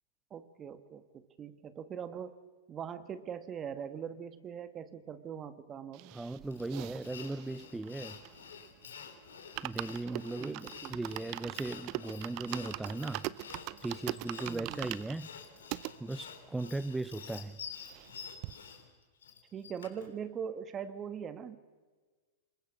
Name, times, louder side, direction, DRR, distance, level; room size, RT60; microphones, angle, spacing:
voice 1, 0.3-2.4 2.7-6.1 10.1-10.9 14.5-15.0 19.5-21.6, right 7 dB, 30° right, 1.7 m, -42 dB
sound 1, 5.9-8.7 9.0-9.1 9.4-15.9 16.5-16.6 16.8-16.9 17.2-18.1 18.4-18.5, right 19 dB, 50° right, 0.6 m, -42 dB
voice 2, 6.1-8.2 9.6-13.5 13.8-15.4 16.0-17.6, right 2 dB, 5° right, 0.6 m, -38 dB
Sawing, 6.5-20.1, left 7 dB, 85° left, 3.8 m, -49 dB
27.0 x 21.5 x 6.1 m
hypercardioid pair, 110°, 0 cm